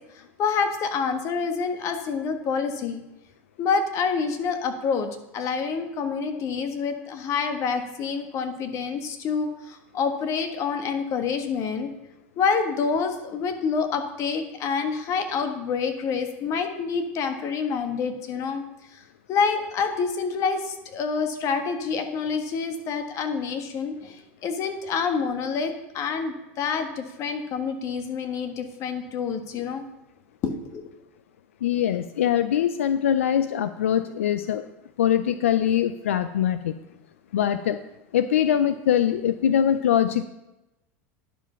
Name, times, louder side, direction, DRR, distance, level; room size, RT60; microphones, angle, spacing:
voice 1, 0.1-3.0 3.6-5.1 5.3-11.9 12.4-18.6 18.9-19.0 19.3-29.8 30.4-30.9, left 5 dB, 45° left, 6 dB, 1.4 m, -27 dB
voice 2, 31.6-34.6 35.0-36.7 37.3-37.8 38.1-40.3, left 10 dB, 90° left, 12 dB, 0.4 m, -22 dB
10.5 x 5.0 x 5.7 m, 0.96 s
hypercardioid pair, 100°, 7 cm